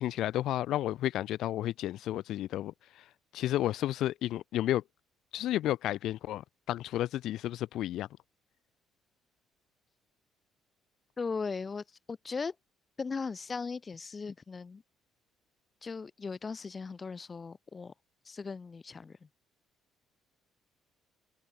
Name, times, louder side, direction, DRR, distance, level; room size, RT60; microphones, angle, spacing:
voice 1, 0.0-3.0 3.3-4.8 5.3-8.1, left 13 dB, 60° left, 3.7 m, -32 dB
voice 2, 11.2-12.5 13.0-14.8 15.8-17.9 18.3-19.3, left 4 dB, 20° left, 3.7 m, -38 dB
cardioid pair, 165°, 0 cm